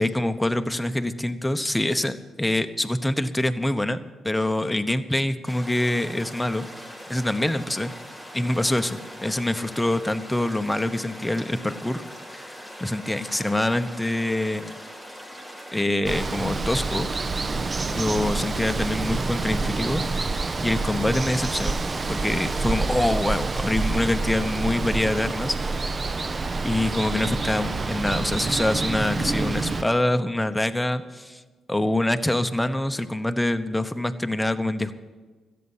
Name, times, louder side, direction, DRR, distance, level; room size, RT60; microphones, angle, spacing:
voice 1, 0.0-4.0 4.2-6.7 7.1-7.9 8.3-12.0 12.3-14.7 15.7-17.1 17.9-20.0 20.3-21.8 22.1-25.8 26.6-31.4 31.7-34.9, left 1 dB, 10° left, 9 dB, 1.0 m, -25 dB
sound 1, 5.4-15.8, equal, 10° right, 4.6 m, -41 dB
Water, 16.0-29.8, right 3 dB, 40° right, 0.7 m, -27 dB
13.5 x 8.5 x 8.0 m, 1.4 s
hypercardioid pair, 50°, 0 cm